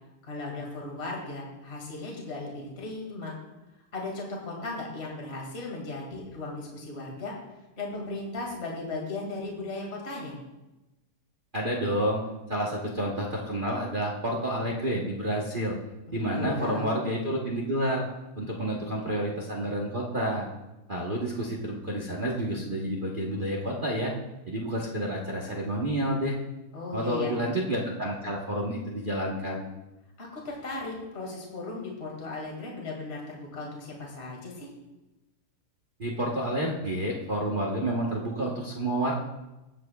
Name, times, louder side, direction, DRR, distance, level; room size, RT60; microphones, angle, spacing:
voice 1, 0.2-3.3 3.9-7.3 7.8-10.4 16.1-16.9 26.7-27.3 30.2-34.7, left 2 dB, 30° left, -2 dB, 2.2 m, -36 dB
voice 2, 11.5-12.2 12.5-15.7 16.1-18.0 18.4-20.5 20.9-24.1 24.5-26.4 26.9-29.7 36.0-39.1, right 1 dB, 35° right, -2 dB, 0.9 m, -29 dB
19.0 x 7.5 x 2.3 m, 1.0 s
omnidirectional pair, 2.4 m